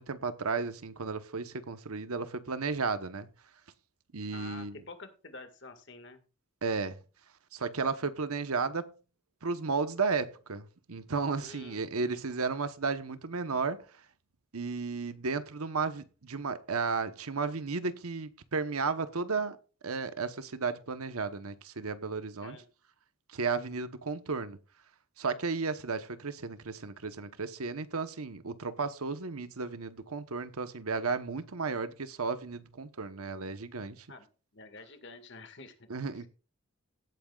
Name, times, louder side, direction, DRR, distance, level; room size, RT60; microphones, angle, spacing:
voice 1, 0.0-3.3 4.1-4.8 6.6-6.9 7.5-8.9 9.4-13.8 14.5-19.6 19.8-22.6 23.3-24.6 25.2-34.1 35.9-36.3, right 4 dB, 85° right, 1.0 m, -33 dB
voice 2, 4.3-6.2 11.4-11.9 22.4-22.7 34.1-34.3 34.5-35.9 36.1-36.3, left 3 dB, 55° left, 1.9 m, -48 dB
17.0 x 8.9 x 2.4 m
head